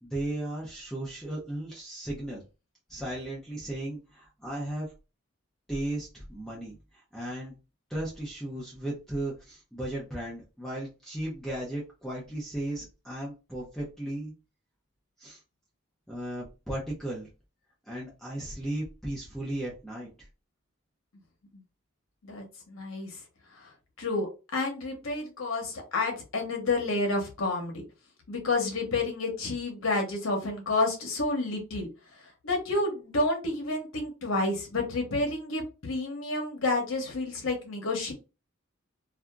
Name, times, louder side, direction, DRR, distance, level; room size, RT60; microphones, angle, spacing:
voice 1, 0.0-2.4 2.9-4.9 5.7-7.5 7.9-14.3 15.2-15.4 16.1-17.3 17.9-20.3, right 1 dB, ahead, -5 dB, 0.6 m, -36 dB
voice 2, 22.2-23.1 23.5-23.7 24.0-24.3 24.5-27.8 28.3-31.9 32.4-38.1, left 2 dB, 80° left, 2 dB, 1.0 m, -30 dB
2.8 x 2.4 x 2.2 m, 0.30 s
head